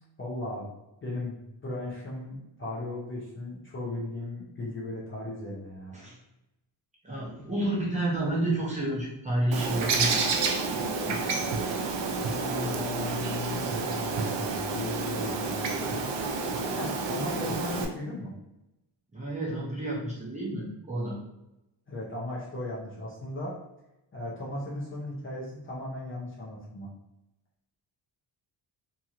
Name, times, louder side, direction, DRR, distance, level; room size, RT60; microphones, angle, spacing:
voice 1, 0.2-0.7 1.0-5.9 12.2-16.1 16.7-18.3 21.9-23.5 24.1-26.9, left 1 dB, 30° left, -6 dB, 0.5 m, -37 dB
voice 2, 7.0-10.4 10.8-11.2 19.1-21.2, right 1 dB, 15° right, -6 dB, 0.6 m, -30 dB
Bird, 9.5-17.9, right 4 dB, 70° right, 0.6 m, -29 dB
2.9 x 2.8 x 2.4 m, 0.92 s
wide cardioid pair, 175°, 46 cm